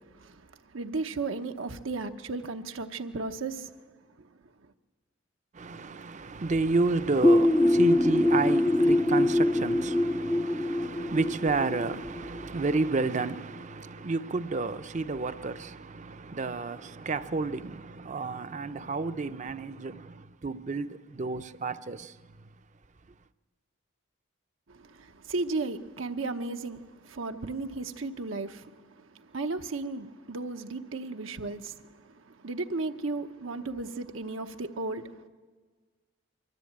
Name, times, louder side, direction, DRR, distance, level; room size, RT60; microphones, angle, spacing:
voice 1, 0.7-3.7 24.7-28.8 29.1-35.3, right 3 dB, 80° right, 0.9 m, -35 dB
voice 2, 5.5-22.1, right 3 dB, 40° right, 0.6 m, -31 dB
sound 1, 7.2-12.8, left 1 dB, 10° left, 0.5 m, -24 dB
23.0 x 13.5 x 8.7 m
head